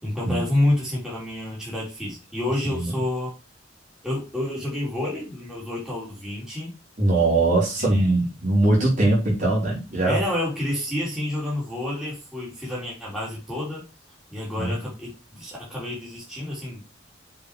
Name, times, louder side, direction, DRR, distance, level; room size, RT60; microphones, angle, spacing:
voice 1, 0.0-3.3 4.0-6.7 7.8-8.2 10.0-13.9 14.3-17.1, left 1 dB, 5° right, -7 dB, 3.5 m, -29 dB
voice 2, 7.0-10.2 14.6-14.8, right 2 dB, 40° right, -4 dB, 4.2 m, -21 dB
7.3 x 5.0 x 4.8 m, 0.28 s
head